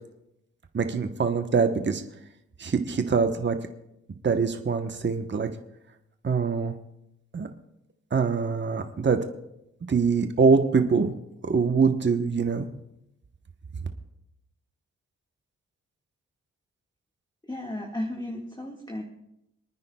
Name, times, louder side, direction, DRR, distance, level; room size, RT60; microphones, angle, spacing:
voice 1, 0.7-2.0 2.6-3.6 4.2-5.5 6.2-6.7 7.3-7.5 8.1-9.2 9.9-11.1 11.4-12.7, right 5 dB, 40° right, 6 dB, 1.0 m, -23 dB
voice 2, 17.4-19.0, left 1 dB, 15° left, 1 dB, 1.7 m, -34 dB
27.5 x 9.5 x 2.3 m, 0.84 s
cardioid pair, 55°, 29 cm